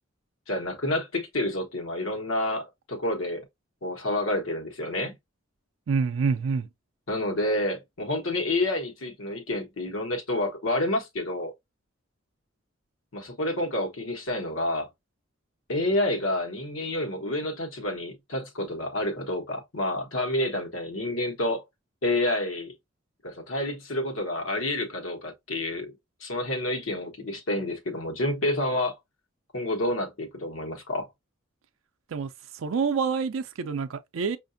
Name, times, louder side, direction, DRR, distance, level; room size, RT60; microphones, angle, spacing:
voice 1, 0.5-3.4 3.8-5.2 7.1-11.5 13.1-14.9 15.7-21.6 22.0-22.7 23.2-25.9 26.2-29.0 29.5-31.1, left 1 dB, 80° left, 1.1 m, -29 dB
voice 2, 5.9-6.7 32.1-34.4, right 5 dB, 75° right, 0.4 m, -27 dB
5.6 x 2.5 x 2.5 m
head